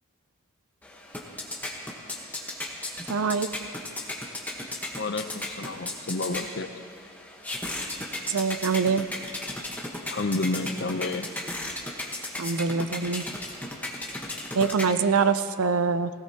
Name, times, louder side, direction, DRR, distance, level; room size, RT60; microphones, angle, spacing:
sound 1, 0.8-15.3, left 1 dB, 10° left, 1.1 m, -36 dB
voice 1, 3.1-3.5 8.3-9.0 12.4-13.2 14.5-16.1, right 5 dB, 90° right, 12 dB, 0.5 m, -24 dB
voice 2, 5.0-6.8 10.1-11.3, left 3 dB, 55° left, 9 dB, 0.6 m, -30 dB
19.5 x 17.0 x 2.9 m, 2.2 s
head